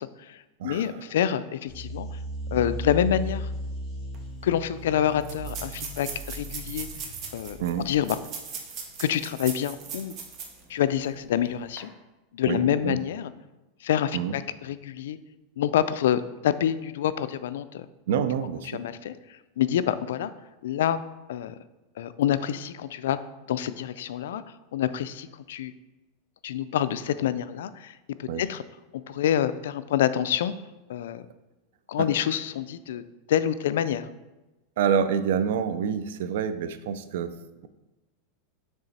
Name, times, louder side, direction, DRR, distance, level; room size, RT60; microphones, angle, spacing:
voice 1, 0.0-2.2 2.5-3.5 4.4-6.9 7.3-7.6 7.8-8.2 9.0-10.1 10.7-11.9 12.3-13.3 13.8-15.2 15.6-17.9 18.7-20.3 20.6-21.0 21.3-21.5 22.0-23.2 23.5-24.4 24.7-25.7 26.4-28.6 29.1-30.5 30.9-31.3 31.9-33.0 33.3-34.1, left 10 dB, 90° left, 14 dB, 0.3 m, -27 dB
voice 2, 0.6-1.0 7.6-7.9 12.5-13.0 14.1-14.4 18.1-18.8 28.3-28.4 32.0-32.1 32.9-33.0 34.8-37.7, right 7 dB, 75° right, 12 dB, 0.4 m, -27 dB
sound 1, 1.7-8.2, equal, 20° left, 2.1 m, -36 dB
sound 2, 4.1-4.2 4.4-4.5 5.2-10.6 11.0-11.1 11.6-11.8, right 6 dB, 35° right, 0.9 m, -39 dB
6.9 x 3.3 x 4.1 m, 1.1 s
supercardioid pair, 160°, 0 cm